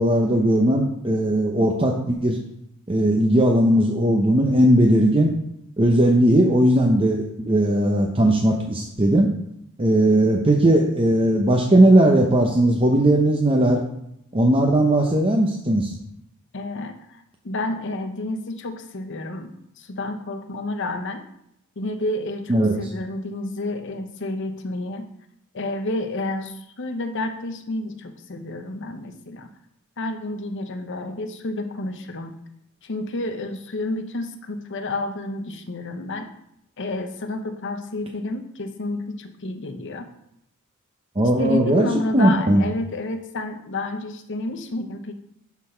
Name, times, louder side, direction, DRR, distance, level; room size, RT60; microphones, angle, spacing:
voice 1, 0.0-2.4 2.9-5.3 5.8-9.3 9.8-13.8 14.3-15.9 22.5-22.8 41.2-41.9 42.1-42.6, right 1 dB, 25° right, 0 dB, 0.7 m, -18 dB
voice 2, 16.5-21.2 21.8-25.1 25.5-29.5 30.0-32.4 32.8-36.3 36.8-40.1 41.2-45.1, left 2 dB, 55° left, 7 dB, 0.8 m, -30 dB
11.5 x 4.0 x 4.4 m, 0.77 s
head